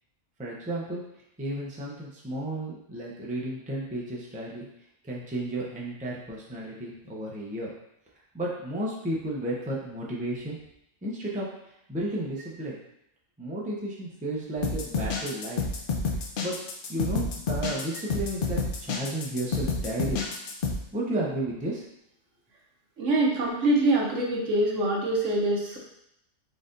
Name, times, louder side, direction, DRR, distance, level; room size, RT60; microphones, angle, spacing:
voice 1, 0.4-1.0 1.4-4.6 5.0-7.7 8.3-10.6 11.0-12.8 13.4-15.6 16.4-16.6 16.9-20.2 20.9-21.8, right 1 dB, 10° right, -4 dB, 0.4 m, -33 dB
sound 1, 14.6-20.8, left 4 dB, 55° left, 0.6 m, -29 dB
voice 2, 23.0-25.8, right 2 dB, 75° right, -2 dB, 1.2 m, -24 dB
4.1 x 3.9 x 2.5 m, 0.80 s
omnidirectional pair, 1.3 m